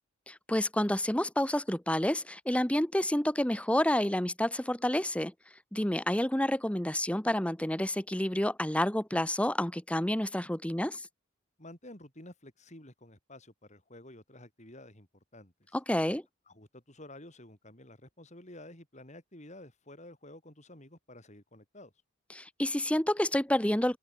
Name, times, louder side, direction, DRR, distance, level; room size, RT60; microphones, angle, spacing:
voice 1, 0.3-5.3 5.7-11.1 15.7-16.2 22.3-24.0, left 1 dB, 5° left, 1.0 m, -29 dB
voice 2, 11.6-15.8 16.5-21.9, left 1 dB, 35° left, 5.5 m, -51 dB
open air
head